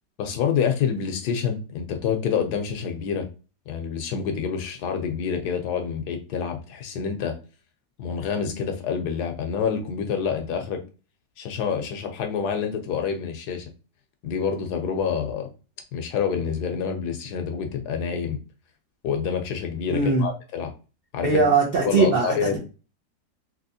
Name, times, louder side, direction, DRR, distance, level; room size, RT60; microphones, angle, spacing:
voice 1, 0.2-3.3 3.7-7.4 8.0-10.8 11.4-13.7 14.2-15.5 15.9-18.4 19.0-20.7 21.1-21.4 21.8-22.6, left 7 dB, 70° left, 5 dB, 1.1 m, -27 dB
voice 2, 19.9-20.2 21.2-22.6, right 4 dB, 70° right, -3 dB, 0.5 m, -21 dB
3.4 x 2.8 x 2.7 m, 0.33 s
omnidirectional pair, 2.0 m